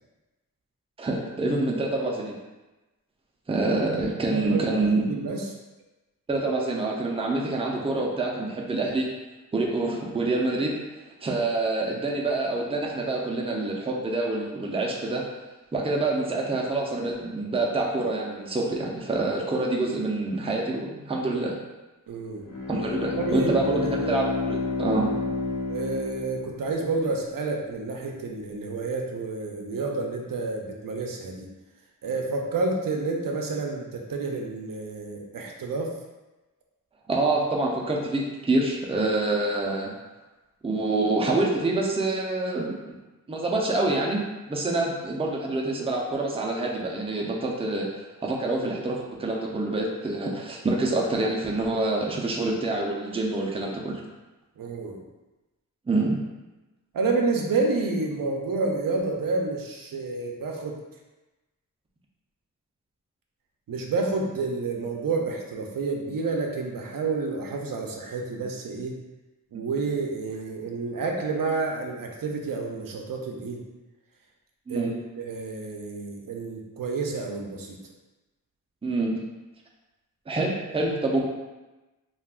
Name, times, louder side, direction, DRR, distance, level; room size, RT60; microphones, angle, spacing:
voice 1, 1.0-2.4 3.5-5.1 6.3-9.1 9.5-10.8 11.2-15.2 15.7-21.6 22.7-25.1 37.1-39.9 40.6-43.0 43.3-44.2 44.5-47.9 48.2-54.0 55.9-56.2 74.7-74.9 78.8-79.2 80.3-81.2, right 2 dB, 15° right, -2 dB, 0.4 m, -26 dB
voice 2, 4.3-5.4 22.1-22.5 23.2-24.1 25.7-31.5 32.0-35.9 54.6-55.0 56.9-60.8 63.7-69.0 69.5-73.6 74.7-77.8, right 3 dB, 75° right, 1 dB, 0.5 m, -29 dB
Bowed string instrument, 22.3-27.1, left 4 dB, 70° left, 1.0 m, -30 dB
2.4 x 2.3 x 3.5 m, 1.1 s
wide cardioid pair, 100°, 34 cm